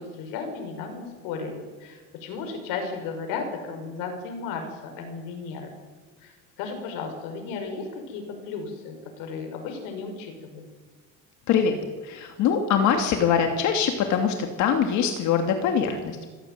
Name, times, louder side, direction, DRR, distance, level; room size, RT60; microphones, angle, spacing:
voice 1, 0.0-5.7 6.2-10.7, left 5 dB, 85° left, 4 dB, 5.9 m, -35 dB
voice 2, 11.5-11.8 12.0-16.2, left 7 dB, 60° left, 4 dB, 2.8 m, -23 dB
26.5 x 16.5 x 9.4 m, 1.4 s
cardioid pair, 165°, 33 cm